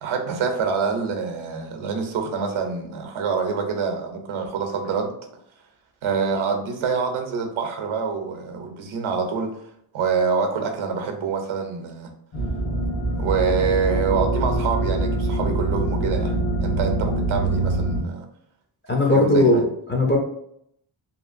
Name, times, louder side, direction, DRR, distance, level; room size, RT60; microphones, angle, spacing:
voice 1, 0.0-5.1 6.0-9.6 9.9-12.1 13.2-18.3 19.1-19.6, right 5 dB, 80° right, 4 dB, 0.7 m, -26 dB
sound 1, 12.3-18.0, right 2 dB, 55° left, 1.1 m, -24 dB
voice 2, 18.9-20.2, left 1 dB, 25° left, 0 dB, 0.4 m, -18 dB
2.9 x 2.4 x 2.5 m, 0.72 s
wide cardioid pair, 135°, 48 cm